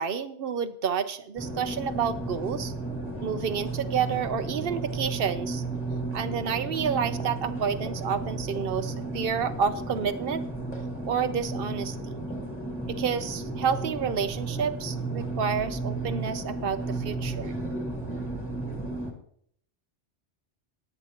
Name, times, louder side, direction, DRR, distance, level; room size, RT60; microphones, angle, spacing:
voice 1, 0.0-2.7 3.2-5.6 6.1-10.4 11.1-12.2 12.9-17.6, right 7 dB, 55° right, 12 dB, 0.8 m, -29 dB
sound 1, 1.4-19.1, right 2 dB, 10° left, 1.9 m, -33 dB
19.0 x 8.8 x 2.9 m, 0.64 s
omnidirectional pair, 1.2 m